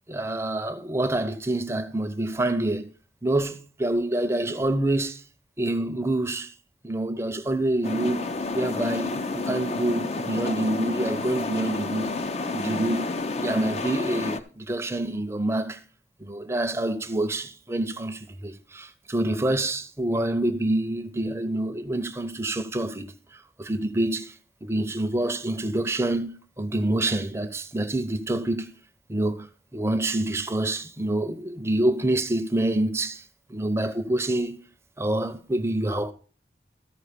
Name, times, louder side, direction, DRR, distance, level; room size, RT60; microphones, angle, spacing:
voice 1, 0.1-2.9 3.2-5.2 5.6-6.5 6.8-12.2 12.5-15.8 16.2-24.3 24.6-28.7 29.1-33.2 33.5-34.6 35.0-36.1, right 1 dB, 15° right, 0.6 m, -27 dB
sound 1, 7.8-14.4, left 3 dB, 35° left, 0.5 m, -30 dB
13.5 x 4.9 x 5.0 m
head